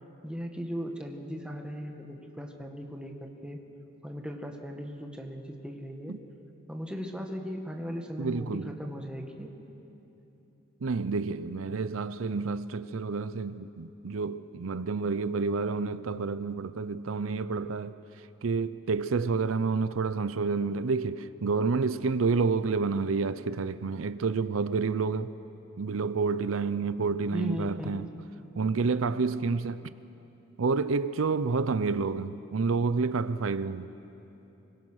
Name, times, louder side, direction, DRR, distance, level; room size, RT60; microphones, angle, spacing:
voice 1, 0.2-3.6 4.0-6.2 6.7-9.5 27.3-28.1 28.6-28.7, equal, 5° right, 1.8 m, -37 dB
voice 2, 8.2-8.7 10.8-18.0 18.4-25.3 25.8-28.1 28.6-29.9 30.6-33.9, right 4 dB, 80° right, 0.6 m, -29 dB
26.0 x 23.0 x 6.4 m
head